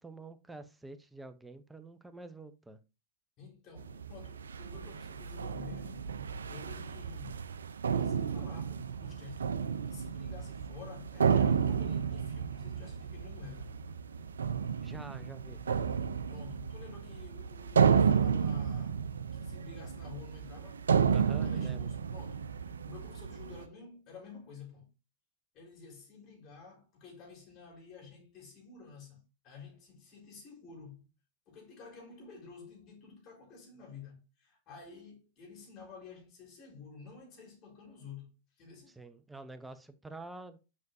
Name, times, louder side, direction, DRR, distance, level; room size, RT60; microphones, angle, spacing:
voice 1, 0.0-2.8 14.8-15.6 21.1-22.0 38.9-40.6, right 2 dB, 10° right, 0.8 m, -47 dB
voice 2, 3.4-6.1 6.5-7.4 7.9-9.5 9.9-13.7 16.3-19.0 19.3-20.9 21.4-24.9 25.5-31.1 31.5-38.9, left 5 dB, 45° left, 4.4 m, -51 dB
sound 1, 3.8-23.6, right 7 dB, 90° right, 0.5 m, -32 dB
7.4 x 6.1 x 2.7 m
hypercardioid pair, 105°, 0 cm